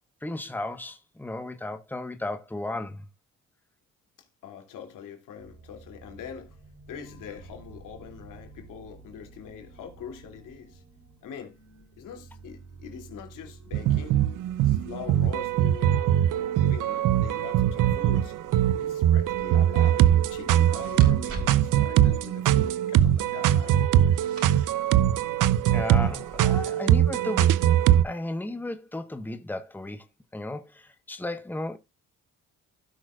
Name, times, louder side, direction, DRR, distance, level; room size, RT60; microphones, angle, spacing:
voice 1, 0.2-3.0 25.7-27.6 28.0-30.1 30.3-31.8, left 2 dB, 5° left, 1.2 m, -34 dB
voice 2, 4.4-6.6 6.9-10.8 11.2-11.6 12.0-14.3 14.6-18.3 18.8-23.8, left 8 dB, 85° left, 2.7 m, -43 dB
sound 1, 5.4-22.1, right 4 dB, 65° right, 3.6 m, -50 dB
sound 2, 13.7-28.0, right 11 dB, 80° right, 0.7 m, -22 dB
sound 3, 19.2-26.4, right 2 dB, 45° right, 3.9 m, -45 dB
16.5 x 6.2 x 2.4 m
cardioid pair, 75°, 31 cm